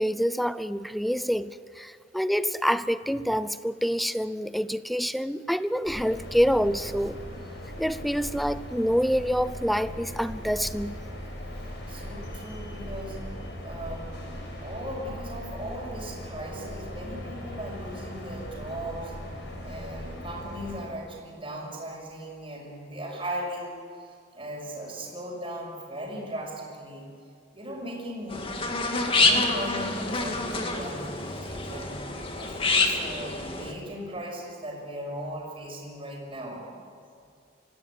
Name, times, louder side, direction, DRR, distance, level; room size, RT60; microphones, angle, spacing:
voice 1, 0.0-7.2 7.8-11.0, equal, ahead, 14 dB, 0.6 m, -27 dB
sound 1, 5.8-20.8, left 1 dB, 65° left, 6.0 m, -39 dB
voice 2, 11.9-13.3 13.6-19.1 19.6-23.7 24.3-27.1 27.5-28.4 29.1-32.1 32.4-36.7, right 1 dB, 30° right, -2 dB, 6.6 m, -38 dB
sound 2, 28.3-33.7, left 3 dB, 30° left, 2.2 m, -27 dB
25.0 x 16.5 x 9.7 m, 2.3 s
head